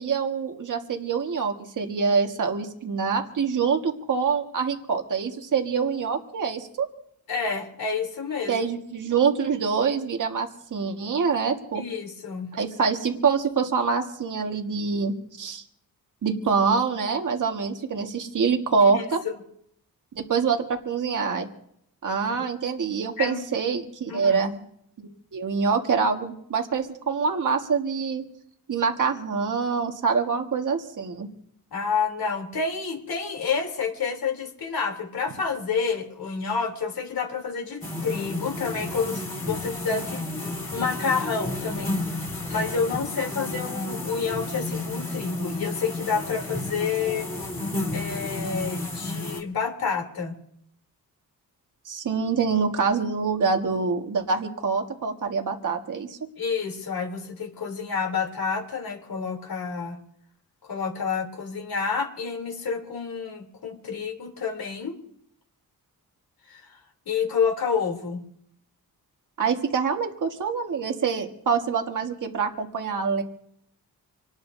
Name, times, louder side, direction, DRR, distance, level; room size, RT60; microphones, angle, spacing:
voice 1, 0.0-6.9 8.5-11.8 12.5-15.6 16.2-19.2 20.1-21.5 22.0-24.6 25.0-28.2 28.7-31.3 51.9-56.2 69.4-73.2, right 5 dB, 55° right, 3 dB, 1.7 m, -25 dB
voice 2, 7.3-8.7 11.7-12.5 18.8-19.3 22.4-22.5 23.2-23.4 24.1-24.4 31.7-42.2 42.5-47.3 47.9-50.3 56.4-60.0 60.7-65.0 66.5-66.8 67.1-68.2, left 5 dB, 70° left, 2 dB, 3.4 m, -29 dB
sound 1, 37.8-49.4, left 2 dB, 20° left, 2.8 m, -32 dB
26.5 x 19.0 x 2.7 m, 0.71 s
wide cardioid pair, 150°, 37 cm